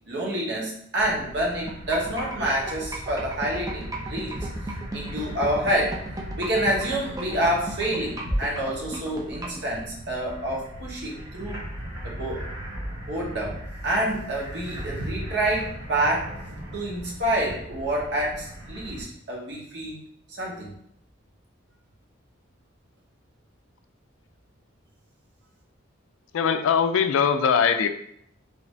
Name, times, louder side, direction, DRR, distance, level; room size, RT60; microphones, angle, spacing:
voice 1, 0.1-4.5 4.9-6.0 6.4-11.7 12.0-12.4 13.1-16.3 16.7-20.0 20.4-20.7, right 1 dB, 55° right, -3 dB, 1.0 m, -28 dB
sound 1, 0.9-19.0, equal, 85° right, 1.0 m, -37 dB
sound 2, 1.7-9.6, right 2 dB, 15° right, 0.3 m, -35 dB
voice 2, 26.3-27.9, left 7 dB, 75° left, 8 dB, 0.3 m, -21 dB
3.3 x 2.5 x 3.1 m, 0.70 s
head